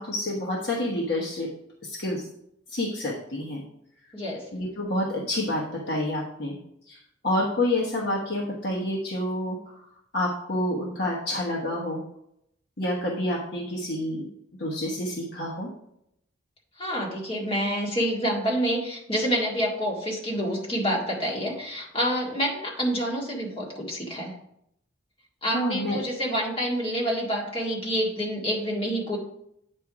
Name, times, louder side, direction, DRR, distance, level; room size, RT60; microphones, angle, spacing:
voice 1, 0.0-1.5 1.8-2.3 2.7-3.6 4.5-6.6 6.9-7.0 7.2-9.6 10.1-12.0 12.8-14.3 14.6-15.7 25.5-26.0, left 1 dB, 55° left, -3 dB, 1.2 m, -28 dB
voice 2, 4.1-4.5 16.8-24.3 25.4-29.2, equal, 25° left, -3 dB, 1.9 m, -27 dB
8.6 x 4.6 x 4.8 m, 0.76 s
head